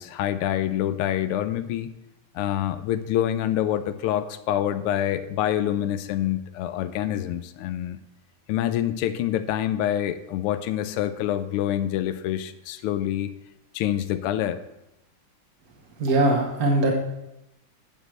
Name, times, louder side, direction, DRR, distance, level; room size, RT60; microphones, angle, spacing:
voice 1, 0.0-1.9 2.3-8.0 8.5-13.3 13.7-14.6, left 11 dB, 90° left, 11 dB, 1.5 m, -26 dB
voice 2, 16.0-16.9, right 2 dB, 45° right, 0 dB, 1.6 m, -21 dB
9.6 x 5.1 x 7.7 m, 0.89 s
omnidirectional pair, 2.4 m